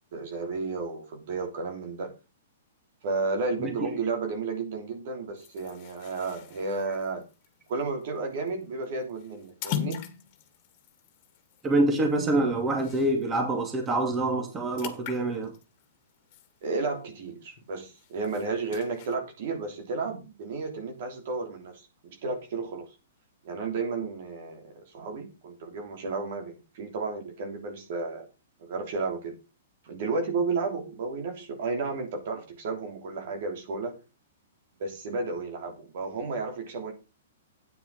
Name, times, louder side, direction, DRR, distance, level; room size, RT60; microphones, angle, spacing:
voice 1, 0.1-2.1 3.0-7.2 7.7-10.0 16.6-21.9 22.2-22.9 23.4-28.3 28.6-29.4 29.8-34.0 34.8-36.9, right 4 dB, 55° right, 3.2 m, -32 dB
voice 2, 3.6-3.9 11.6-15.5, right 2 dB, 20° right, 2.6 m, -26 dB
sound 1, 5.4-13.4 13.7-13.9 14.2-17.1 17.5-19.1, left 10 dB, 45° left, 1.9 m, -41 dB
9.6 x 9.4 x 4.0 m
hypercardioid pair, 125°, 0 cm